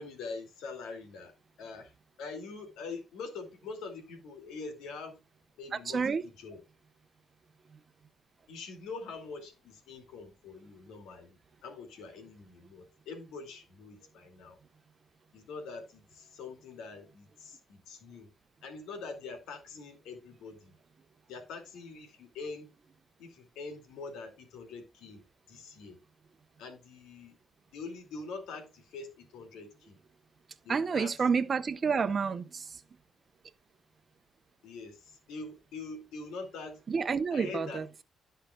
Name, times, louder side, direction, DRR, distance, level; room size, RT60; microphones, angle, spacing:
voice 1, 0.0-1.3 1.6-1.9 2.2-5.2 5.6-6.6 8.5-11.4 11.6-14.6 15.3-18.3 18.6-20.7 21.3-22.7 23.2-26.0 26.6-27.4 27.7-30.0 30.6-31.1 34.6-36.8 37.3-37.8, left 4 dB, 90° left, 2.5 m, -44 dB
voice 2, 5.9-6.2 30.7-32.7 36.9-37.9, right 5 dB, 40° right, 0.8 m, -29 dB
14.5 x 5.8 x 2.4 m
cardioid pair, 90°, 0 cm